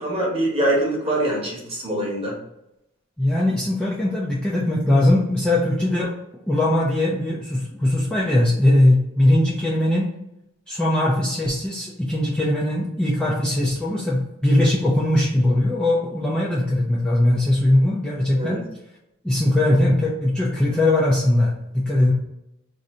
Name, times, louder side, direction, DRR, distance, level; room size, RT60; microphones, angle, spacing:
voice 1, 0.0-2.3 18.3-18.6, right 1 dB, 30° right, -3 dB, 1.0 m, -23 dB
voice 2, 3.2-6.1 6.5-10.1 10.7-18.6 19.2-22.1, left 1 dB, 5° left, -6 dB, 0.4 m, -20 dB
2.6 x 2.5 x 4.2 m, 0.85 s
head